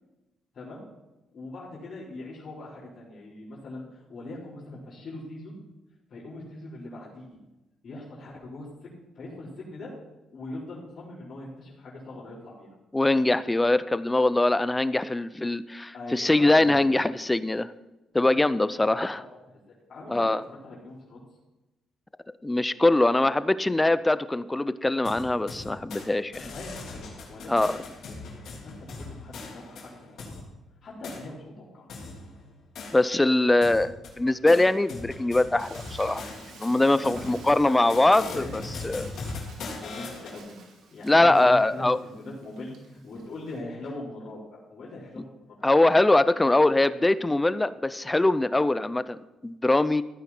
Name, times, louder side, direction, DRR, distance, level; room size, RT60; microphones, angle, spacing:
voice 1, 0.5-0.9 1.3-5.5 6.1-7.4 7.8-9.9 10.3-12.7 15.9-17.0 19.0-19.6 19.9-21.2 26.4-27.7 28.2-30.5 30.8-31.9 37.0-38.8 39.7-40.6 40.9-45.7, left 2 dB, 50° left, -9 dB, 4.3 m, -41 dB
voice 2, 12.9-17.7 18.1-19.2 20.1-20.4 22.4-26.4 27.5-27.8 32.9-36.2 36.6-39.1 41.0-42.0 45.6-50.0, left 2 dB, 15° left, 15 dB, 0.5 m, -22 dB
sound 1, 25.0-26.1 26.3-30.4 31.0-31.2 31.9-33.3 33.6-40.4, left 3 dB, 70° left, 3.5 m, -40 dB
Frying (food), 35.6-43.6, right 4 dB, 75° right, 2.5 m, -51 dB
14.5 x 9.5 x 4.4 m, 1.0 s
cardioid pair, 90°, 0 cm